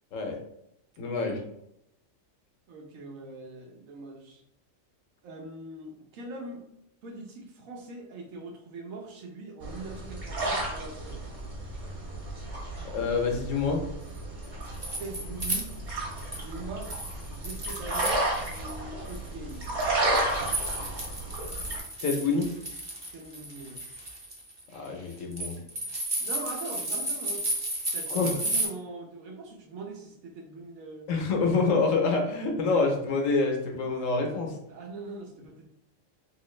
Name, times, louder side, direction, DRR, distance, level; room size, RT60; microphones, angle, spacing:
voice 1, 1.0-1.4 12.9-13.9 22.0-22.5 24.7-25.6 28.1-28.4 31.1-34.6, left 4 dB, 75° left, 2 dB, 1.1 m, -27 dB
voice 2, 2.7-4.4 5.2-6.7 7.0-11.2 15.0-15.7 16.4-16.9 17.3-19.6 23.1-23.8 26.2-27.5 27.8-31.1 34.7-35.7, right 3 dB, 85° right, 1 dB, 1.2 m, -42 dB
sound 1, 9.6-21.8, right 1 dB, 60° right, 1.4 m, -33 dB
sound 2, 14.4-16.5 16.8-18.7 19.1-28.7, right 1 dB, 25° right, 0.6 m, -34 dB
3.0 x 2.9 x 3.1 m, 0.79 s
omnidirectional pair, 1.4 m